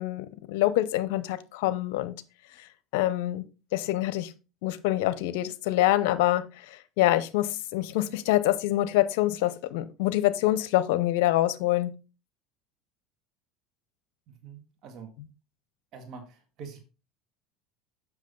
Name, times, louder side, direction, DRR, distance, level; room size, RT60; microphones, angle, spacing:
voice 1, 0.0-2.1 2.9-3.5 3.7-4.3 4.6-6.4 7.0-11.9, left 15 dB, 75° left, 14 dB, 0.7 m, -25 dB
voice 2, 14.3-15.1 15.9-16.8, right 5 dB, 55° right, 5 dB, 2.0 m, -45 dB
7.5 x 5.9 x 3.8 m, 0.30 s
supercardioid pair, 90°, 0 cm